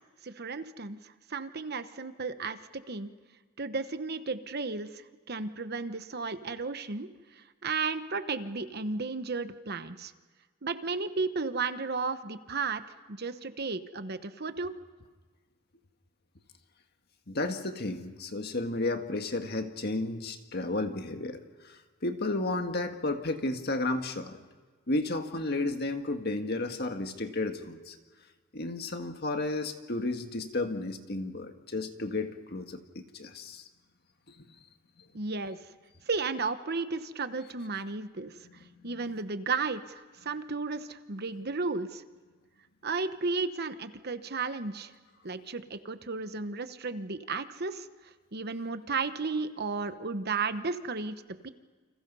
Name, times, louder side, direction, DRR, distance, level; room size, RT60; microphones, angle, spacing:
voice 1, 0.2-3.1 3.6-7.1 7.3-10.1 10.6-14.7 35.1-35.6 36.1-42.0 42.8-44.9 45.2-47.9 48.3-51.5, right 4 dB, 45° right, 10 dB, 1.1 m, -34 dB
voice 2, 17.3-21.4 21.6-24.4 24.9-28.0 28.5-33.7 34.4-34.5 38.6-38.9, left 2 dB, 45° left, 6 dB, 1.7 m, -33 dB
29.0 x 27.0 x 5.5 m, 1.4 s
head